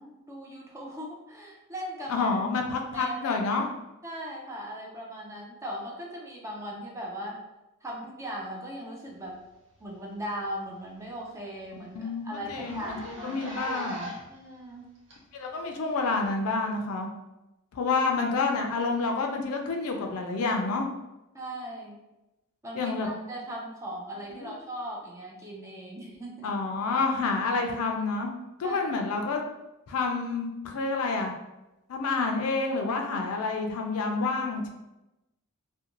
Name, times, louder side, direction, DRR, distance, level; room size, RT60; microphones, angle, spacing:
voice 1, 0.0-2.3 2.9-3.4 4.0-7.4 7.8-9.4 9.8-13.4 14.3-14.9 21.3-22.0 22.6-26.6 28.6-29.1, equal, 15° right, -2 dB, 0.4 m, -38 dB
voice 2, 2.1-3.7 11.9-14.1 15.3-17.1 17.7-20.9 22.7-23.1 24.4-24.6 26.4-28.3 28.6-29.4 29.9-31.3 31.9-34.7, left 3 dB, 70° left, 3 dB, 0.4 m, -28 dB
Zipper (clothing), 9.8-10.0 10.3-10.4 10.8-10.9 11.2-11.3 11.6-11.7 12.4-14.4 15.1-15.2 16.2-16.3, right 1 dB, 55° right, 0.6 m, -39 dB
2.4 x 2.2 x 2.9 m, 0.96 s
head